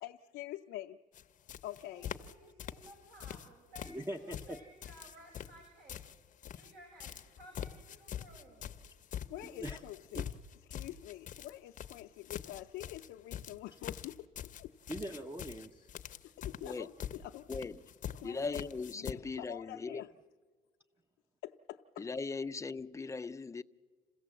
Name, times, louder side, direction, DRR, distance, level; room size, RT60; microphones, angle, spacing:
voice 1, 0.0-1.0 1.6-2.1 6.6-6.7 9.3-10.3 10.7-14.7 16.0-17.7 18.1-18.6 18.9-20.1 21.4-22.1, left 14 dB, 80° left, 0.6 m, -46 dB
sound 1, 1.1-1.2 1.5-2.3 2.6-3.5 3.7-6.7 7.0-19.1, left 9 dB, 50° left, 0.8 m, -44 dB
voice 2, 1.8-6.0 6.5-8.8, right 1 dB, 70° right, 6.0 m, -57 dB
voice 3, 3.9-4.6 9.5-9.8 10.1-10.3 14.9-15.9, right 1 dB, 15° right, 0.8 m, -42 dB
voice 4, 18.2-20.0 22.0-23.6, left 4 dB, 20° left, 0.6 m, -39 dB
27.5 x 16.0 x 7.7 m
cardioid pair, 110°, 17 cm